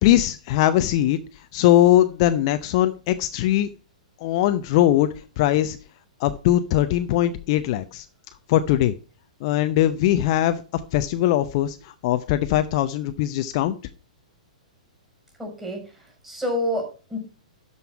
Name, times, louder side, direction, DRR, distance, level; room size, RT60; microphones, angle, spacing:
voice 1, 0.0-1.2 1.5-3.7 4.2-5.1 5.4-5.8 6.2-8.0 8.5-8.9 9.4-13.8, left 13 dB, 45° left, 10 dB, 0.7 m, -20 dB
voice 2, 15.4-17.2, left 1 dB, 5° right, 0 dB, 5.5 m, -29 dB
12.5 x 5.6 x 4.6 m, 0.34 s
figure-of-eight pair, 110°, 4 cm